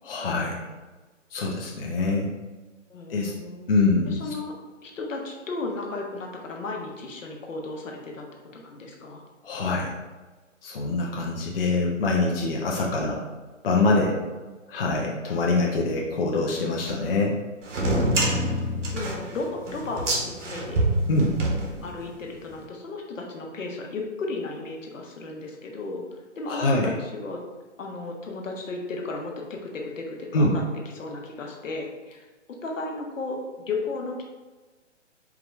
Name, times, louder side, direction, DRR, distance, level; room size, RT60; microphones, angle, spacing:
voice 1, 0.0-0.6 1.3-2.3 3.1-3.3 3.7-4.2 9.4-9.9 10.6-13.2 13.6-14.2 14.7-17.4 21.1-21.3 26.5-26.9 30.3-30.5, left 3 dB, 50° left, -3 dB, 0.7 m, -24 dB
voice 2, 2.9-3.7 4.1-4.5 4.8-8.3 8.5-9.2 18.9-20.9 21.8-27.4 27.8-30.6 30.9-32.2 32.6-33.4 33.7-34.2, left 3 dB, 80° left, 1 dB, 1.0 m, -34 dB
sound 1, 17.7-22.2, right 1 dB, 70° right, 1.2 m, -26 dB
4.8 x 2.4 x 3.2 m, 1.3 s
hypercardioid pair, 165°, 38 cm